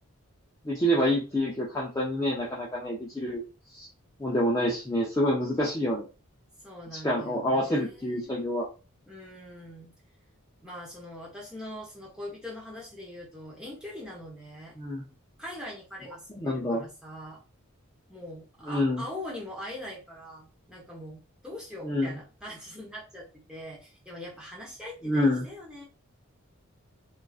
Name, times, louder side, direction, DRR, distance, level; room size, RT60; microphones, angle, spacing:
voice 1, 0.6-3.4 3.7-3.9 4.2-6.1 6.9-8.7 14.8-15.0 16.4-16.8 18.7-19.0 21.8-22.2 25.0-25.5, equal, 15° left, -5 dB, 0.3 m, -27 dB
voice 2, 6.6-8.5 9.0-9.9 10.6-14.7 15.4-17.4 18.1-25.8, left 1 dB, 5° right, -4 dB, 0.7 m, -42 dB
2.4 x 2.3 x 2.3 m, 0.32 s
head